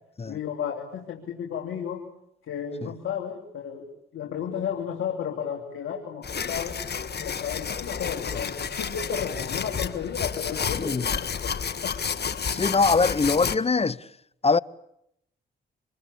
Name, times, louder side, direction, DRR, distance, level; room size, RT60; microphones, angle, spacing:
voice 1, 0.3-2.0 2.5-6.8 7.2-12.0, left 8 dB, 75° left, 3.1 m, -33 dB
sound 1, 6.2-13.6, left 6 dB, 50° left, 1.5 m, -30 dB
voice 2, 12.5-14.0 14.4-14.6, left 4 dB, 30° left, 0.9 m, -22 dB
26.0 x 22.5 x 8.5 m
supercardioid pair, 50°, 21 cm